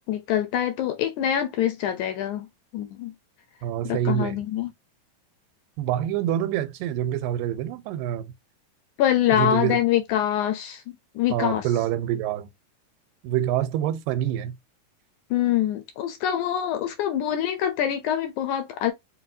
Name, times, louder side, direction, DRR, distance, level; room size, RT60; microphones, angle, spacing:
voice 1, 0.0-2.5 2.7-3.1 3.8-4.7 9.0-10.8 11.2-11.6 15.3-18.9, left 11 dB, 80° left, 1.9 m, -25 dB
voice 2, 3.6-4.4 5.8-8.3 9.3-9.8 11.3-12.5 13.2-14.6, right 11 dB, 90° right, 2.3 m, -26 dB
5.8 x 2.8 x 2.6 m
omnidirectional pair, 3.9 m